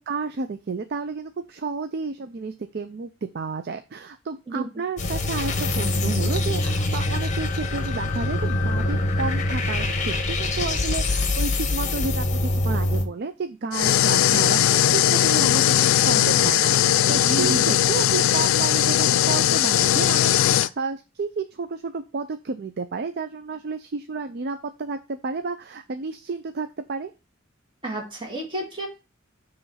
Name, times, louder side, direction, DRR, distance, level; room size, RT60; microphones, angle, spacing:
voice 1, 0.0-27.1, right 4 dB, 55° right, 9 dB, 0.5 m, -31 dB
sound 1, 5.0-13.0, left 2 dB, 40° left, 0.9 m, -24 dB
Wind instrument woodwind instrument, 7.0-9.8, left 12 dB, 15° left, 0.9 m, -38 dB
sound 2, 13.7-20.7, left 11 dB, 85° left, 0.3 m, -19 dB
voice 2, 17.2-17.7 27.8-28.9, right 3 dB, 25° right, -1 dB, 2.0 m, -30 dB
7.0 x 3.2 x 5.6 m, 0.29 s
head